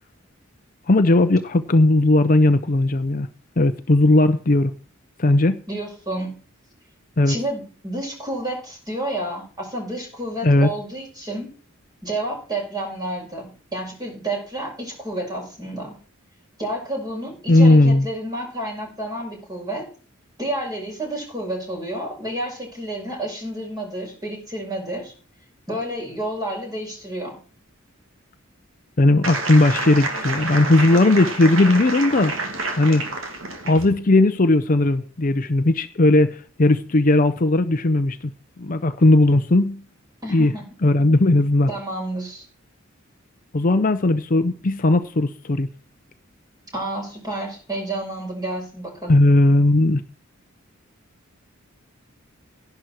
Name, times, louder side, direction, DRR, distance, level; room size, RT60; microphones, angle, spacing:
voice 1, 0.9-3.3 3.6-4.7 5.2-5.6 7.2-7.3 10.4-10.7 17.5-18.1 29.0-32.4 32.8-33.1 33.6-38.3 38.6-39.8 40.3-40.5 40.8-41.7 43.5-45.7 49.1-50.0, left 2 dB, 40° left, 10 dB, 0.7 m, -17 dB
voice 2, 5.7-6.4 7.3-11.5 12.0-16.0 16.6-19.9 20.4-25.1 25.7-27.4 40.2-40.7 41.7-42.4 46.7-49.3, right 1 dB, 20° right, -1 dB, 6.4 m, -30 dB
sound 1, 29.2-33.9, right 2 dB, 70° right, 2.6 m, -28 dB
12.0 x 11.5 x 4.5 m, 0.39 s
head